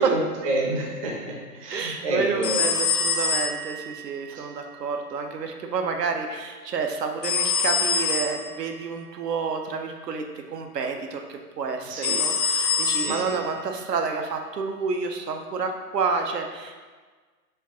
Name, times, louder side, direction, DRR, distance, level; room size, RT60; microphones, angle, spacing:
voice 1, 0.0-2.7 4.3-4.4 11.9-12.1 13.0-13.2, right 2 dB, 25° right, -3 dB, 0.5 m, -28 dB
voice 2, 1.7-16.8, right 5 dB, 85° right, 4 dB, 0.7 m, -29 dB
sound 1, 2.4-4.0 7.2-8.5 12.0-13.4, left 5 dB, 35° left, 0.4 m, -25 dB
4.5 x 2.8 x 3.7 m, 1.4 s
hypercardioid pair, 135°, 48 cm